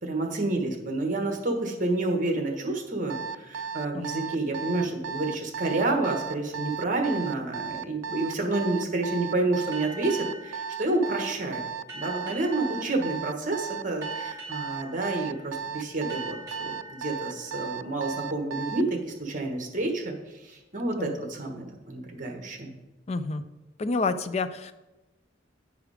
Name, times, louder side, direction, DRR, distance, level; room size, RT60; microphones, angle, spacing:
voice 1, 0.0-11.6 11.9-20.1 20.4-22.8, right 2 dB, 45° right, 4 dB, 1.3 m, -29 dB
Alarm, 3.1-18.9, right 7 dB, 90° right, 0.3 m, -35 dB
sound 1, 9.7-18.9, right 2 dB, 15° right, 3.1 m, -45 dB
voice 2, 23.1-23.4 23.8-24.7, left 3 dB, 35° left, 11 dB, 0.4 m, -29 dB
9.0 x 5.0 x 4.8 m, 1.1 s
head